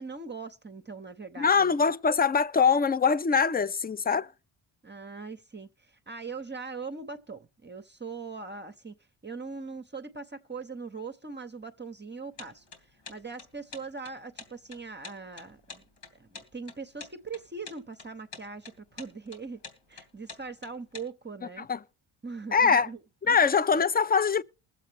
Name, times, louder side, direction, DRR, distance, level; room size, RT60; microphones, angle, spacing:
voice 1, 0.0-1.8 4.8-8.9 9.2-15.8 16.1-19.6 19.9-21.7 22.2-23.0 23.3-23.4, right 4 dB, 20° right, 0.8 m, -41 dB
voice 2, 1.4-4.3 21.6-21.8 22.5-22.9 23.3-24.4, left 5 dB, 20° left, 0.4 m, -23 dB
sound 1, 12.4-21.0, left 4 dB, 80° left, 3.0 m, -46 dB
21.0 x 7.6 x 3.3 m
cardioid pair, 85°, 50 cm